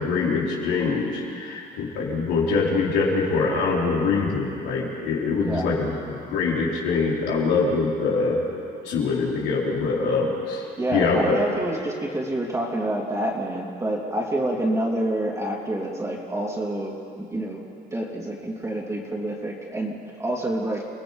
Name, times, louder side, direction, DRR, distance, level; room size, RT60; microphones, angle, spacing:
voice 1, 0.0-5.9 6.3-8.4 8.8-10.6 10.9-11.4, left 4 dB, 90° left, -4 dB, 4.7 m, -24 dB
voice 2, 10.8-20.8, right 1 dB, 15° right, -2 dB, 3.3 m, -28 dB
29.5 x 18.0 x 5.3 m, 2.5 s
cardioid pair, 110°, 17 cm